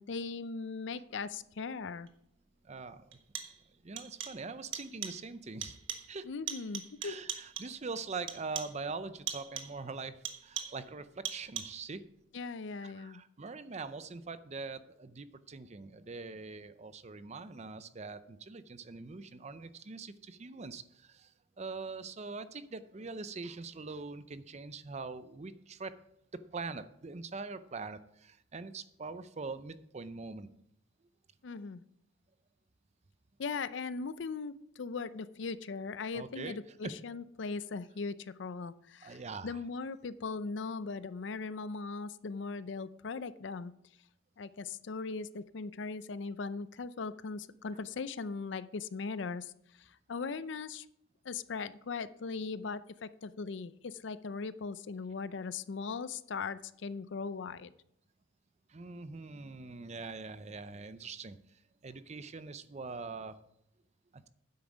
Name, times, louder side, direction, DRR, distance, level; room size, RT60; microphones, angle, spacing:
voice 1, 0.0-2.1 6.2-7.1 12.3-13.2 31.4-31.8 33.4-43.7 44.4-50.9 51.2-57.7, left 4 dB, 65° left, 15 dB, 0.5 m, -39 dB
sound 1, 2.1-2.2 3.1-3.7 4.0-4.5 4.7-5.3 5.6-6.2 6.5-7.8 8.3-8.9 9.3-9.8 10.2-10.9 11.2-11.9, right 9 dB, 75° right, 1.3 m, -41 dB
voice 2, 2.6-3.2 3.8-5.8 6.1-6.3 7.0-12.1 12.8-26.0 26.3-30.5 36.1-36.6 36.8-36.9 39.0-39.6 58.7-63.4 64.1-64.3, right 4 dB, 35° right, 13 dB, 0.5 m, -43 dB
9.6 x 8.0 x 5.0 m, 0.73 s
head